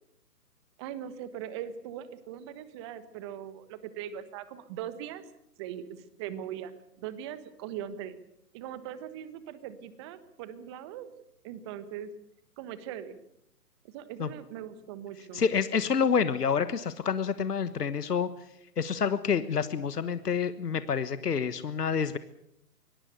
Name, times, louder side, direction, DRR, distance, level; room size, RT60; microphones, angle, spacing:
voice 1, 0.8-5.2 5.6-6.7 7.0-8.2 8.5-11.1 11.4-12.1 12.6-13.2 13.8-15.4, right 10 dB, 15° right, 14 dB, 1.2 m, -40 dB
voice 2, 15.3-18.3 18.8-22.2, left 6 dB, 70° left, 13 dB, 1.4 m, -28 dB
24.0 x 18.5 x 8.1 m, 0.76 s
figure-of-eight pair, 145°, 48 cm